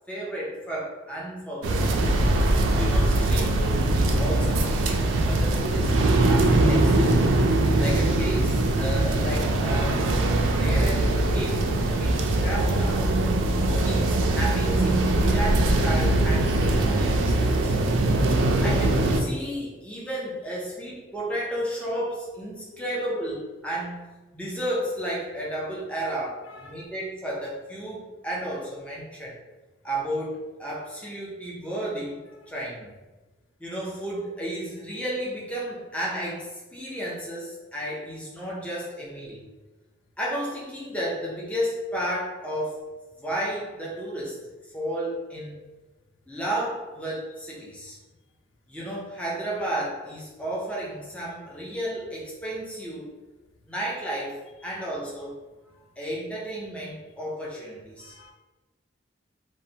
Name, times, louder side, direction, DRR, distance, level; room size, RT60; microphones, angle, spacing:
voice 1, 0.1-2.1 2.7-7.4 7.8-10.1 10.5-11.7 12.0-13.1 13.7-17.7 18.6-24.1 24.3-29.4 29.8-32.2 32.5-32.9 33.6-39.5 40.2-42.8 43.2-44.4 44.7-45.6 46.3-48.0 48.7-53.1 53.7-55.3 56.0-58.1, right 1 dB, 5° left, -5 dB, 0.5 m, -33 dB
sound 1, 1.6-19.2, right 2 dB, 85° right, 0.3 m, -22 dB
voice 2, 11.9-12.4 22.7-22.8 26.5-26.9 58.0-58.3, left 2 dB, 90° left, 3 dB, 0.4 m, -49 dB
2.9 x 2.1 x 2.7 m, 1.2 s
head